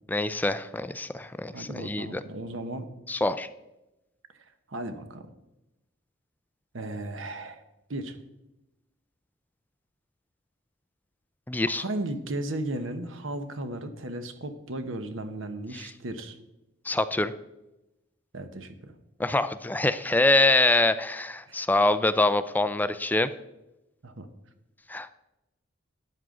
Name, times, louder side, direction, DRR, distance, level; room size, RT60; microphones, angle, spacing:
voice 1, 0.1-2.2 3.1-3.5 11.5-11.8 15.8-15.9 16.9-17.3 19.2-23.3 24.9-25.1, left 2 dB, 10° left, 12 dB, 0.4 m, -25 dB
voice 2, 1.5-2.9 4.7-5.3 6.7-7.6 7.9-8.2 11.7-16.4 18.3-19.0 24.0-24.3, right 1 dB, 85° right, 9 dB, 1.1 m, -35 dB
12.5 x 9.2 x 3.8 m, 0.94 s
head